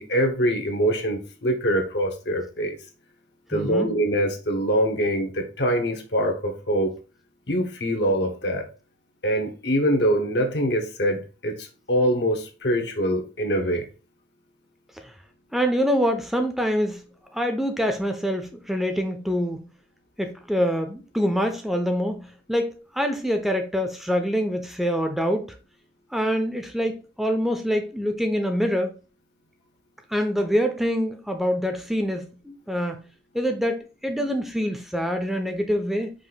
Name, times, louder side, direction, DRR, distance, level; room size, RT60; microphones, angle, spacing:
voice 1, 0.0-2.8 3.5-6.9 7.5-8.7 9.2-13.9, equal, 75° left, 1.1 m, -24 dB
voice 2, 3.5-3.9 15.5-17.0 17.3-19.6 20.2-25.5 26.1-28.9 30.1-33.0 33.3-36.1, equal, ahead, 0.4 m, -25 dB
5.1 x 2.5 x 3.9 m
head